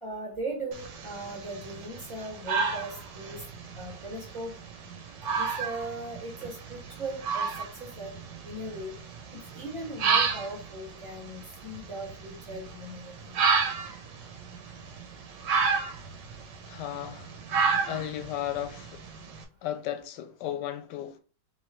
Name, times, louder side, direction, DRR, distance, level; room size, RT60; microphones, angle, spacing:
voice 1, 0.0-3.4 3.7-4.5 5.4-8.1 8.4-8.9 9.5-13.3, right 2 dB, 20° left, 0.9 m, -38 dB
sound 1, 0.7-19.4, right 5 dB, 80° right, 1.3 m, -32 dB
voice 2, 16.7-17.3 17.9-19.0 19.6-21.2, left 11 dB, 75° left, 1.1 m, -34 dB
3.7 x 3.1 x 3.0 m
omnidirectional pair, 2.0 m